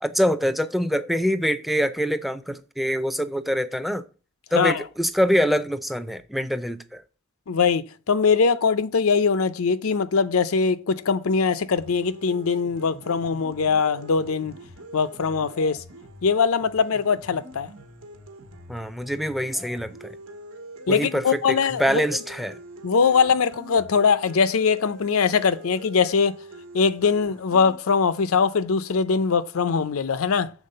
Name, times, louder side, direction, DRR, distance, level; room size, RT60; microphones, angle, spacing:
voice 1, 0.0-4.0 4.5-7.0 18.7-20.2 20.9-22.6, equal, ahead, 0.4 m, -25 dB
voice 2, 7.5-14.6 14.9-15.8 16.2-17.7 20.9-22.0 22.8-26.4 26.7-30.5, left 5 dB, 85° left, 0.6 m, -22 dB
sound 1, 11.8-27.8, right 1 dB, 85° right, 1.3 m, -44 dB
7.2 x 4.2 x 6.6 m
head